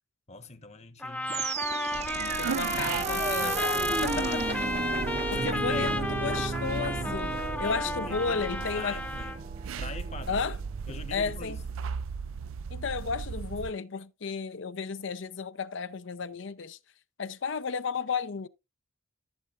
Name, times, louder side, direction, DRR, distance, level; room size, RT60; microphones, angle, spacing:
voice 1, 0.3-1.5 2.5-2.7 4.0-4.5 5.3-6.0 7.6-8.5 8.7-9.5 9.8-10.5 10.9-11.6, left 3 dB, 30° left, 1.0 m, -43 dB
sound 1, 1.0-9.4, left 1 dB, 10° left, 0.8 m, -33 dB
sound 2, 1.3-10.4, right 4 dB, 30° right, 0.6 m, -34 dB
sound 3, 1.9-13.7, right 5 dB, 80° right, 0.4 m, -38 dB
voice 2, 2.4-4.6 5.3-9.0 10.3-10.6 11.1-11.6 12.7-16.8 17.2-18.5, left 5 dB, 65° left, 0.6 m, -33 dB
14.0 x 7.8 x 2.5 m
head